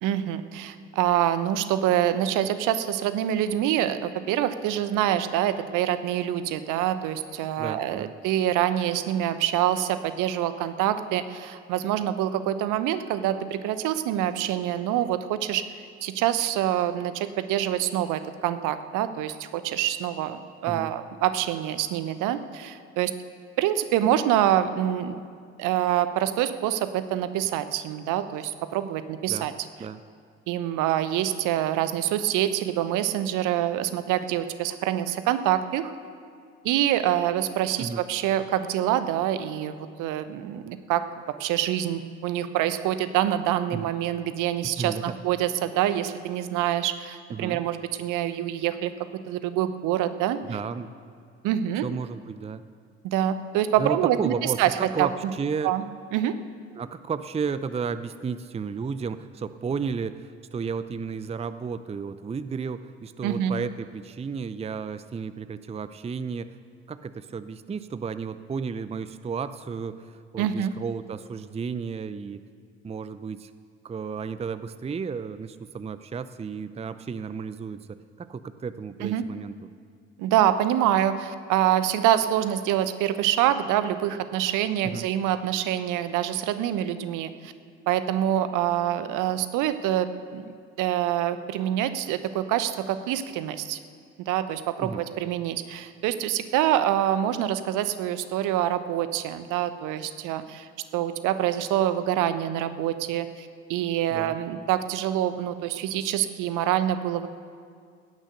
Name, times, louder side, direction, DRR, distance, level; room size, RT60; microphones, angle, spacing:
voice 1, 0.0-23.1 23.6-25.2 25.6-29.5 30.5-35.9 36.6-41.0 41.4-48.9 49.3-50.4 51.4-51.8 53.0-54.3 54.6-54.7 55.0-55.1 55.6-55.8 56.1-56.3 63.2-63.5 70.4-70.7 79.0-79.2 80.2-87.5 87.9-90.4 90.8-93.8 94.3-107.3, right 11 dB, 60° right, 12 dB, 1.0 m, -26 dB
voice 2, 7.6-8.1 20.7-20.9 29.3-29.5 29.8-30.0 37.8-38.0 43.7-43.9 44.8-45.0 47.3-47.6 50.4-50.9 51.8-52.6 53.8-55.7 56.7-66.5 66.9-72.4 72.8-73.5 73.8-77.8 78.2-79.7 84.8-85.1 94.8-95.1 104.1-104.4, right 5 dB, 15° right, 13 dB, 0.6 m, -33 dB
16.5 x 10.0 x 6.5 m, 2.1 s
figure-of-eight pair, 55°, 36 cm